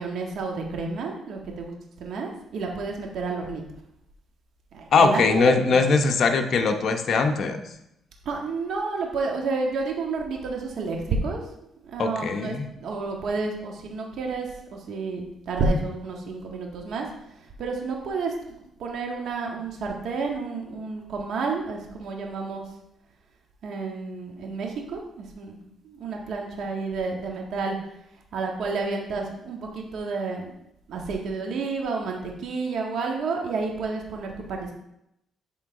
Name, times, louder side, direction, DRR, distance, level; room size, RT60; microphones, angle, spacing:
voice 1, 0.0-1.7 2.0-3.6 4.7-6.0 8.2-11.4 11.9-14.5 14.7-17.1 17.6-22.6 23.6-25.6 26.0-27.8 28.3-30.5 30.9-34.7, right 4 dB, 70° right, 1 dB, 1.6 m, -30 dB
voice 2, 4.9-7.7 12.0-12.7, left 4 dB, 60° left, 5 dB, 0.9 m, -21 dB
11.5 x 3.9 x 3.8 m, 0.81 s
cardioid pair, 90°, 0 cm